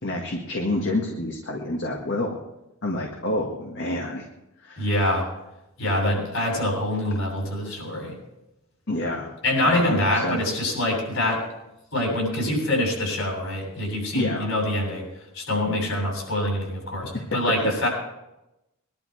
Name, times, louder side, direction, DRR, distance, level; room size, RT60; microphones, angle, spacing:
voice 1, 0.0-2.4 2.8-4.3 4.6-5.0 8.9-9.3 9.6-10.4 14.1-14.5 17.6-17.7, left 1 dB, 55° left, 0 dB, 1.8 m, -28 dB
voice 2, 4.8-5.2 5.8-8.1 9.4-11.4 11.9-15.1 15.3-17.9, left 1 dB, 70° left, -1 dB, 7.8 m, -25 dB
22.0 x 11.5 x 4.7 m, 0.94 s
head